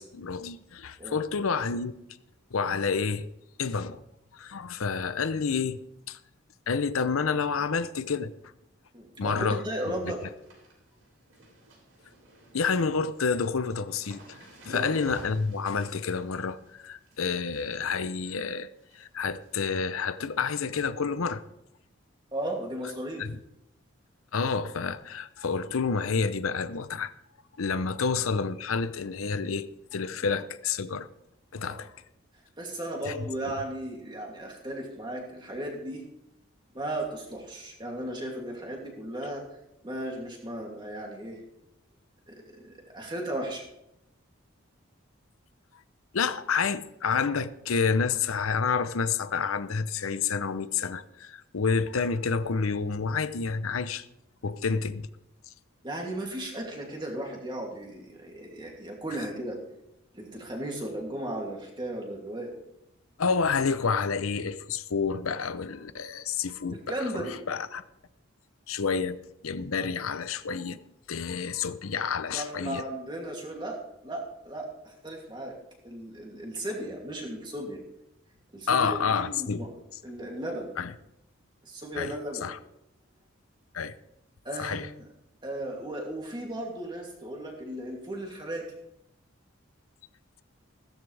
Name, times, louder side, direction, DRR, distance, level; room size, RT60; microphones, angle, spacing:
voice 1, 0.0-2.0 2.5-3.3 3.6-4.0 4.3-5.8 6.1-6.2 6.7-8.3 9.2-9.9 12.5-14.4 14.7-18.7 19.0-21.4 23.2-23.4 24.3-27.1 27.6-31.1 31.5-31.9 33.0-33.1 46.1-54.0 54.4-55.1 63.2-67.8 68.7-69.2 69.4-70.8 71.1-72.8 78.7-79.6 80.8-80.9 82.0-82.1 82.4-82.6 83.7-83.9 84.6-84.9, left 5 dB, 90° left, 0.7 m, -29 dB
voice 2, 8.9-10.2 14.7-14.9 22.3-23.2 27.9-28.0 31.6-31.8 32.6-36.0 36.7-39.4 39.8-41.4 42.3-43.6 55.8-59.6 60.1-62.5 66.7-67.4 71.6-71.7 72.3-75.6 75.8-77.8 78.5-79.8 80.0-80.7 81.6-82.4 84.4-84.9 85.4-88.6, right 1 dB, 20° right, 2.7 m, -36 dB
sound 1, 9.5-9.6 9.8-19.1 19.4-19.8 20.1-21.0 21.3-21.4 22.4-22.6 22.9-23.0 23.4-23.5 25.1-25.2 25.9-26.0, right 1 dB, 80° right, 6.4 m, -52 dB
16.0 x 13.0 x 3.4 m
head